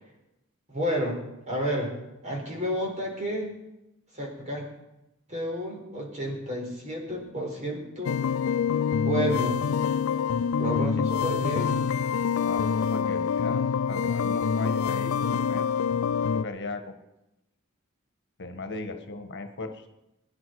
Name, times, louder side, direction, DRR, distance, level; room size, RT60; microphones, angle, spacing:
voice 1, 0.7-1.2 1.5-1.9 2.2-3.5 4.1-4.6 5.3-8.2 9.0-9.6 10.6-11.9, equal, 35° right, -1 dB, 4.7 m, -30 dB
sound 1, 8.0-16.4, left 6 dB, 90° left, 0.4 m, -26 dB
voice 2, 12.4-15.7 16.3-17.0 18.4-19.9, left 3 dB, 60° left, 7 dB, 1.5 m, -37 dB
22.5 x 10.5 x 4.8 m, 0.94 s
head